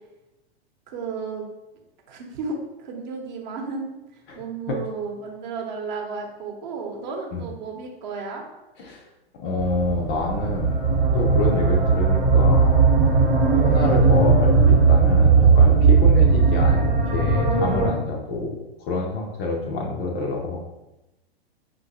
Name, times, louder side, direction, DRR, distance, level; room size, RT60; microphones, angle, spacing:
voice 1, 0.9-1.5 2.1-3.9 4.3-8.4 13.7-14.0, right 4 dB, 45° right, 1 dB, 0.9 m, -33 dB
voice 2, 9.3-12.8 13.5-20.6, left 3 dB, 25° left, 0 dB, 0.4 m, -27 dB
sound 1, 9.6-17.9, right 4 dB, 20° right, 0.9 m, -17 dB
5.4 x 2.6 x 2.9 m, 0.98 s
figure-of-eight pair, 100°, 32 cm